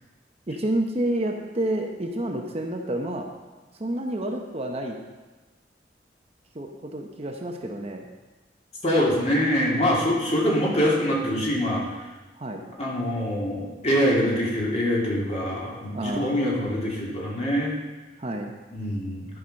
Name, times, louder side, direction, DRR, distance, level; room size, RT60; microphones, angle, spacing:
voice 1, 0.5-3.3 3.8-5.0 6.5-8.0 12.4-12.6 15.9-16.5 18.2-18.5, right 1 dB, 35° right, 2 dB, 0.9 m, -29 dB
voice 2, 8.8-11.8 12.8-17.8 18.7-19.3, equal, 35° left, -4 dB, 2.4 m, -24 dB
11.5 x 6.2 x 5.3 m, 1.2 s
head